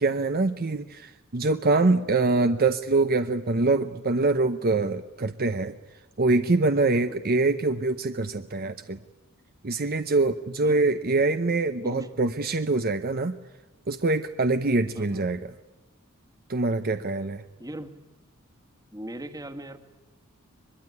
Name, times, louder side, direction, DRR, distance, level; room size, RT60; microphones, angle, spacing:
voice 1, 0.0-5.7 6.2-9.0 9.6-13.4 13.9-15.4 16.5-17.4, right 3 dB, 45° right, 9 dB, 0.8 m, -24 dB
voice 2, 14.9-15.4 17.6-18.0 18.9-19.8, right 1 dB, 15° right, 8 dB, 1.6 m, -39 dB
24.0 x 21.5 x 9.6 m, 1.1 s
head